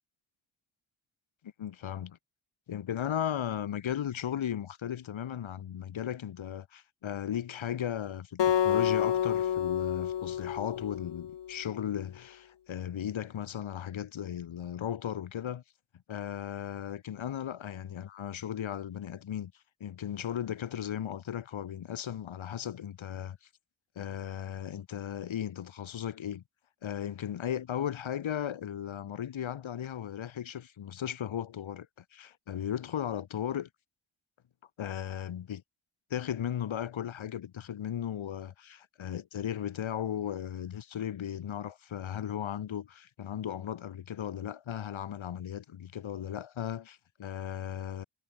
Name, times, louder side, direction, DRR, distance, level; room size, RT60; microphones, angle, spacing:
voice 1, 1.6-2.2 2.7-15.6 16.1-19.5 19.8-23.4 23.9-26.4 26.8-33.7 34.8-35.6 36.1-48.0, left 9 dB, 75° left, 1.8 m, -36 dB
Acoustic guitar, 8.4-11.6, left 10 dB, 60° left, 1.1 m, -29 dB
cardioid pair, 60°, 48 cm